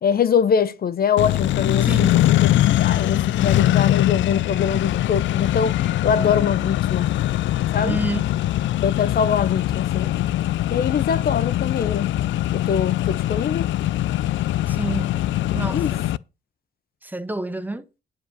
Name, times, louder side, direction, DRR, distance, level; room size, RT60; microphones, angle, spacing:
voice 1, 0.0-7.1 7.7-8.0 8.8-10.2 10.7-12.2 12.5-13.7 15.7-15.9, left 7 dB, 50° left, 0.8 m, -23 dB
Accelerating revving vroom, 1.2-16.2, left 14 dB, 70° left, 0.5 m, -22 dB
voice 2, 1.8-2.1 7.8-8.2 14.7-15.2 15.5-16.0 17.0-17.8, right 2 dB, 10° right, 1.3 m, -28 dB
10.5 x 4.9 x 6.7 m
cardioid pair, 90°, 20 cm